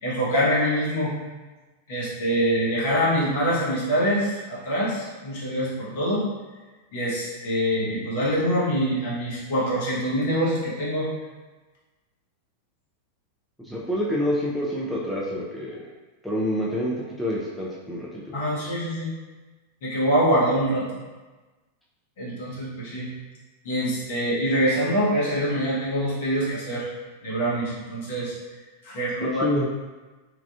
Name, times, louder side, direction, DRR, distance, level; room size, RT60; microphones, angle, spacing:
voice 1, 0.0-1.1 1.9-6.2 6.9-11.1 18.3-19.1 19.8-20.9 22.2-23.1 23.6-26.9 27.2-28.3 28.8-29.4, equal, 55° left, -7 dB, 1.0 m, -24 dB
voice 2, 13.6-15.9 16.2-18.4 29.2-29.7, equal, ahead, -6 dB, 0.4 m, -27 dB
3.2 x 2.3 x 2.3 m, 1.2 s
figure-of-eight pair, 90°, 0 cm